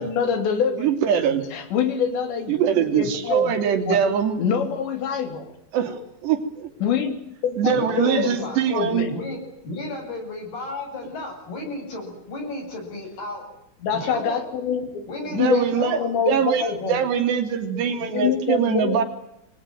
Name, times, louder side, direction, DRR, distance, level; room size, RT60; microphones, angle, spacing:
voice 1, 0.0-1.2 1.5-3.5 3.9-4.0 4.4-5.5 6.8-9.1 13.8-15.0 15.3-17.0 18.1-19.0, left 7 dB, 75° left, 8 dB, 5.5 m, -25 dB
voice 2, 0.8-1.4 2.5-4.4 5.7-6.7 7.6-9.1 15.3-16.0 16.3-19.0, right 8 dB, 70° right, 8 dB, 5.0 m, -23 dB
voice 3, 7.7-8.6 9.1-13.4 13.9-14.4 15.1-16.0, left 2 dB, 60° left, 1 dB, 9.6 m, -34 dB
27.5 x 23.5 x 9.2 m, 0.81 s
omnidirectional pair, 5.1 m